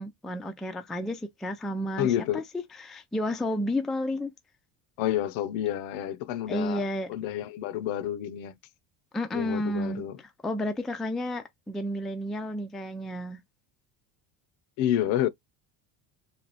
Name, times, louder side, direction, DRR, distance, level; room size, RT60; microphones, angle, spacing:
voice 1, 0.0-2.1 2.3-2.4 2.8-4.3 6.5-7.1 9.1-10.0 10.4-13.4, left 1 dB, ahead, 0.3 m, -31 dB
voice 2, 2.0-2.4 5.0-6.8 7.1-8.5 9.3-10.2 14.8-15.3, left 11 dB, 75° left, 0.8 m, -29 dB
3.3 x 2.2 x 4.1 m
cardioid pair, 120°, 48 cm